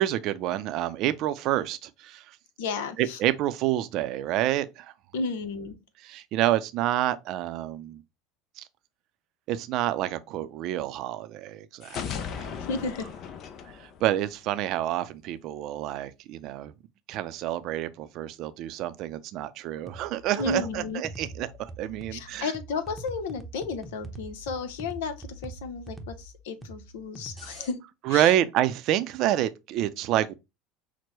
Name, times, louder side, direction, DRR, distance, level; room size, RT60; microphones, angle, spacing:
voice 1, 0.0-2.2 3.0-4.9 6.0-8.0 8.6-8.7 9.5-12.7 14.0-16.7 17.1-22.5 28.0-30.3, right 13 dB, 60° right, 0.5 m, -28 dB
voice 2, 2.6-3.2 5.1-5.8 12.7-13.1 20.4-21.0 22.1-27.8 28.1-28.3, left 4 dB, 85° left, 0.8 m, -33 dB
sound 1, 11.8-14.7, left 7 dB, 50° left, 0.5 m, -37 dB
sound 2, 19.9-27.7, right 1 dB, 5° right, 0.8 m, -43 dB
6.0 x 2.1 x 3.0 m
supercardioid pair, 105°, 0 cm